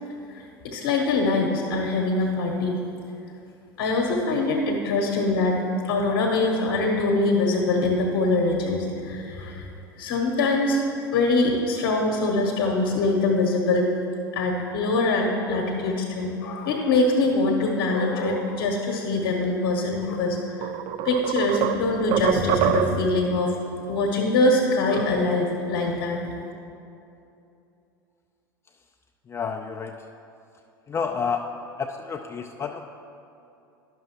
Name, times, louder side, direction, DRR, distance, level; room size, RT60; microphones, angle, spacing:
voice 1, 0.3-2.8 3.8-5.6 5.8-9.7 10.0-10.8 11.1-13.9 14.3-20.7 21.0-23.5 23.9-26.2, left 2 dB, 60° left, 0 dB, 1.0 m, -23 dB
sound 1, 20.0-20.1 20.6-23.2, right 10 dB, 45° right, 0.4 m, -25 dB
voice 2, 29.3-29.9 30.9-31.4 31.8-32.8, left 6 dB, 25° left, 3 dB, 0.4 m, -29 dB
11.0 x 6.2 x 2.9 m, 2.7 s
figure-of-eight pair, 75°, 12 cm